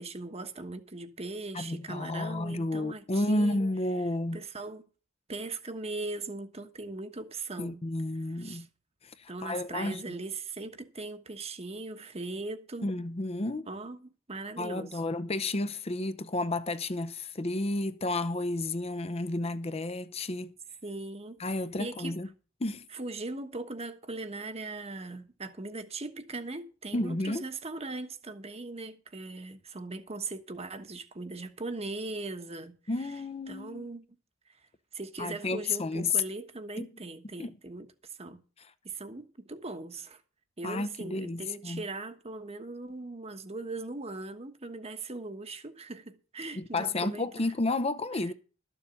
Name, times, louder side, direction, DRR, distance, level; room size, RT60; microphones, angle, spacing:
voice 1, 0.0-3.6 4.3-4.8 5.3-7.8 8.3-8.7 9.3-12.9 13.7-15.0 20.8-22.2 22.9-33.1 33.5-34.0 34.5-34.6 34.9-38.4 38.8-40.2 40.6-47.5 48.1-48.3, right 3 dB, 30° right, 1.2 m, -39 dB
voice 2, 1.5-4.4 7.6-8.7 9.0-10.0 12.8-13.7 14.6-20.5 21.4-22.3 22.6-22.9 26.9-27.4 32.9-33.9 35.2-36.1 36.8-36.9 37.4-37.5 40.6-41.8 46.5-48.3, left 2 dB, 30° left, 0.7 m, -31 dB
13.0 x 7.1 x 6.9 m
head